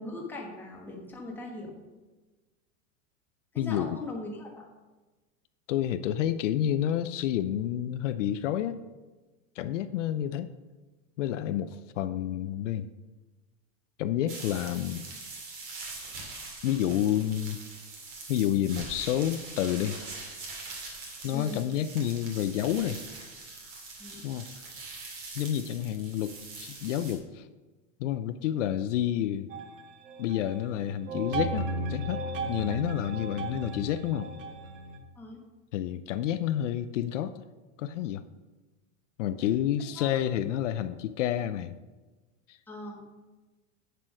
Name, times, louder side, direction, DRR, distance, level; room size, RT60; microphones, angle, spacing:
voice 1, 0.0-1.7 3.5-4.7 21.3-21.6 24.0-24.2 35.2-35.4 40.0-40.2 42.7-43.0, left 2 dB, 5° left, -2 dB, 1.3 m, -40 dB
voice 2, 3.6-4.0 5.7-8.8 9.6-10.5 11.2-12.9 14.0-15.1 16.6-17.6 18.3-20.0 21.2-23.0 24.2-24.5 25.4-27.5 28.0-29.5 30.2-34.3 35.7-37.4 37.8-38.2 39.2-41.7 42.5-42.6, left 11 dB, 70° left, 11 dB, 0.7 m, -29 dB
sound 1, 14.3-27.1, right 3 dB, 35° right, 2.7 m, -43 dB
sound 2, 29.5-30.7 31.1-35.0, right 2 dB, 70° right, 1.5 m, -35 dB
8.6 x 7.6 x 6.3 m, 1.2 s
supercardioid pair, 170°, 38 cm